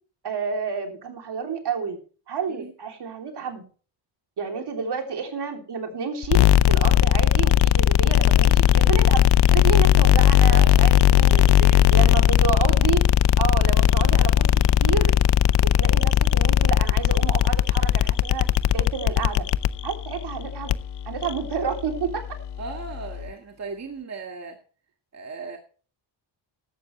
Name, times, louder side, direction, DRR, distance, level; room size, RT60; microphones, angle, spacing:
voice 1, 0.2-2.0 2.3-3.6 4.4-6.4 6.7-9.2 9.5-11.5 11.9-13.0 13.4-14.5 14.8-15.1 15.8-18.4 18.7-19.4 19.8-20.7 21.1-22.2, right 6 dB, 55° right, 4 dB, 3.5 m, -29 dB
sound 1, 6.2-23.3, left 10 dB, 55° left, 0.7 m, -19 dB
voice 2, 10.5-12.2 22.6-24.6 25.1-25.6, right 3 dB, 35° right, 3 dB, 1.9 m, -37 dB
15.0 x 12.0 x 3.3 m, 0.39 s
cardioid pair, 115°, 48 cm